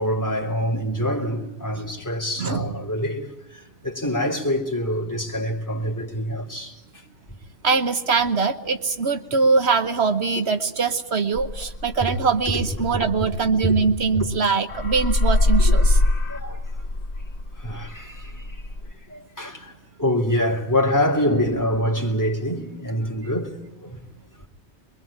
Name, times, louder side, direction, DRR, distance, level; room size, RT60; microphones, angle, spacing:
voice 1, 0.0-6.8 12.0-12.1 12.5-13.3 13.6-13.7 14.1-14.3 15.6-15.7 16.3-16.6 17.6-18.6 19.1-19.7 20.0-24.0, equal, 15° left, 3.3 m, -25 dB
voice 2, 7.6-16.0, right 4 dB, 70° right, 1.4 m, -22 dB
sound 1, 11.4-14.4 14.7-18.9, left 2 dB, 75° left, 1.6 m, -23 dB
24.0 x 23.0 x 8.7 m
omnidirectional pair, 1.1 m